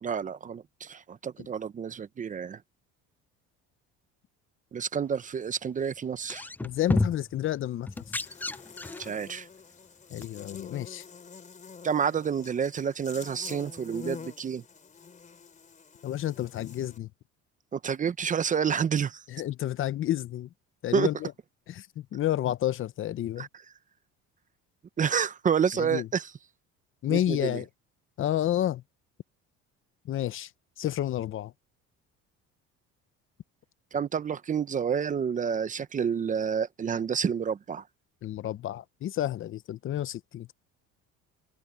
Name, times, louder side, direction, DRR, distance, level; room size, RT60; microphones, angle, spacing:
voice 1, 0.0-2.6 4.7-6.5 9.0-9.5 11.8-14.6 17.7-19.2 20.9-21.1 23.4-23.5 25.0-26.3 27.1-27.6 33.9-37.8, right 7 dB, 25° right, 0.7 m, -29 dB
sound 1, 6.1-7.3 7.9-9.2 10.2-10.3, left 2 dB, 5° left, 0.3 m, -30 dB
voice 2, 6.6-7.9 10.1-11.0 16.0-17.1 19.3-20.5 20.8-21.3 21.7-23.5 25.7-26.1 27.0-27.7 28.2-28.8 30.0-30.5 30.8-31.5 38.2-40.5, left 12 dB, 45° left, 0.8 m, -30 dB
Buzz, 7.9-17.0, left 5 dB, 25° left, 3.9 m, -47 dB
cardioid pair, 130°, 29 cm